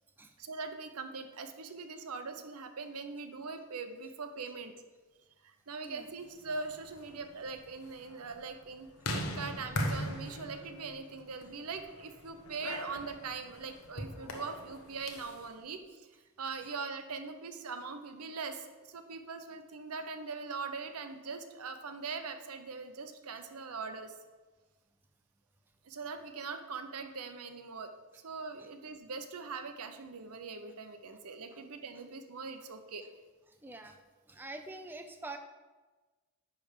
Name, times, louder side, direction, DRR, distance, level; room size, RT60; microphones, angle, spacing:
voice 1, 0.4-4.7 5.4-16.1 16.4-24.1 25.8-27.9 28.2-33.0, right 4 dB, 80° right, 7 dB, 0.8 m, -42 dB
sound 1, 6.4-15.5, left 1 dB, 75° left, 1.1 m, -41 dB
voice 2, 33.6-33.9 34.3-35.4, right 2 dB, 10° right, 5 dB, 0.4 m, -44 dB
10.0 x 3.4 x 6.6 m, 1.3 s
head